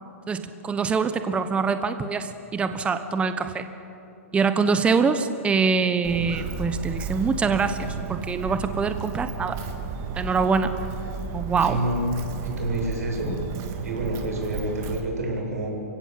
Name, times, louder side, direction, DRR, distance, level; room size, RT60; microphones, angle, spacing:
voice 1, 0.3-3.7 4.3-9.6 10.2-10.7 11.3-11.8, right 5 dB, 15° right, 10 dB, 1.2 m, -24 dB
Walk footsteps, 6.0-15.0, right 5 dB, 35° right, 2.6 m, -33 dB
voice 2, 11.7-13.4 13.8-15.8, right 1 dB, 80° right, 0 dB, 7.5 m, -28 dB
28.5 x 16.5 x 7.8 m, 2.9 s
hypercardioid pair, 125°, 8 cm